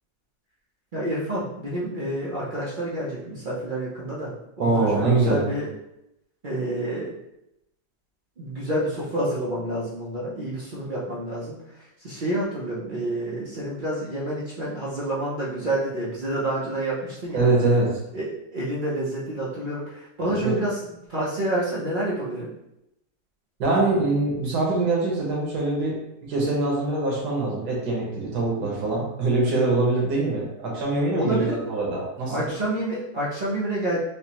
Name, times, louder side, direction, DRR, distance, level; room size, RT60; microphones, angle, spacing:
voice 1, 0.9-5.7 6.4-7.1 8.4-11.6 12.0-17.5 18.1-22.5 30.7-30.8 31.1-31.5 32.3-34.0, right 1 dB, 55° right, -7 dB, 0.5 m, -28 dB
voice 2, 4.6-5.4 17.3-18.0 20.2-20.6 23.6-25.9 26.3-32.5, right 2 dB, 90° right, -3 dB, 1.7 m, -23 dB
5.0 x 2.0 x 2.9 m, 0.84 s
omnidirectional pair, 1.7 m